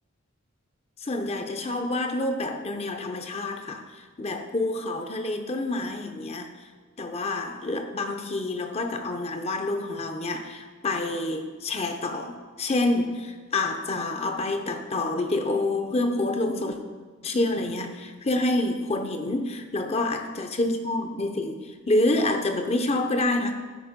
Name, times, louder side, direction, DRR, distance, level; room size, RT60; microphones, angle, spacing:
voice 1, 1.0-6.7 7.0-16.8 17.2-23.5, left 2 dB, 30° left, 6 dB, 0.7 m, -27 dB
12.5 x 4.8 x 5.2 m, 1.4 s
head